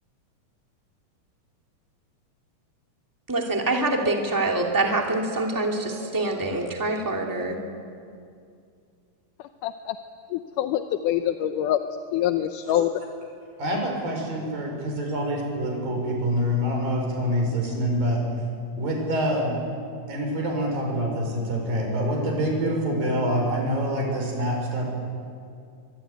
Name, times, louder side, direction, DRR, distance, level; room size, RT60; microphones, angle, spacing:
voice 1, 3.3-7.6, right 2 dB, 5° right, 1 dB, 2.0 m, -25 dB
voice 2, 9.6-10.0 10.3-12.9, left 11 dB, 75° left, 8 dB, 2.2 m, -25 dB
voice 3, 13.6-18.2 18.8-19.6 20.1-24.9, equal, 80° right, 1 dB, 7.0 m, -26 dB
24.0 x 23.0 x 9.4 m, 2.3 s
omnidirectional pair, 4.0 m